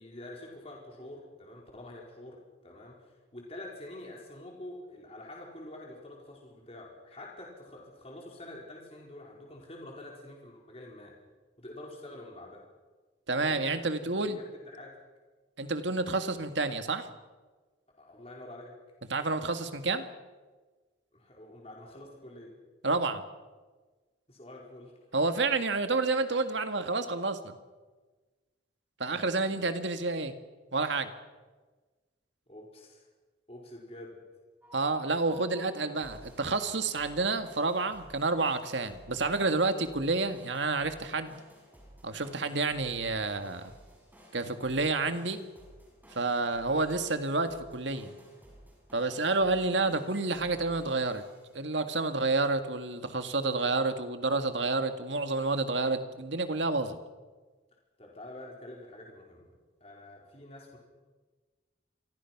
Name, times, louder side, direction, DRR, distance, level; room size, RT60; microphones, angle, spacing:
voice 1, 0.0-11.2 11.6-12.6 13.4-13.7 14.0-14.9 18.0-18.7 21.1-22.5 24.3-24.9 29.1-29.7 32.5-33.0 33.5-34.2 58.0-59.5 59.8-60.8, left 1 dB, 35° left, -1 dB, 4.7 m, -47 dB
voice 2, 13.3-14.4 15.6-17.1 19.1-20.0 22.8-23.2 25.1-27.6 29.0-30.3 30.7-31.1 34.7-41.4 42.0-43.7 44.3-45.4 46.2-48.1 48.9-51.2 51.5-57.0, right 3 dB, 80° right, 8 dB, 2.0 m, -29 dB
sound 1, 34.6-51.7, equal, 10° right, 7.3 m, -55 dB
28.5 x 24.0 x 6.1 m, 1.3 s
head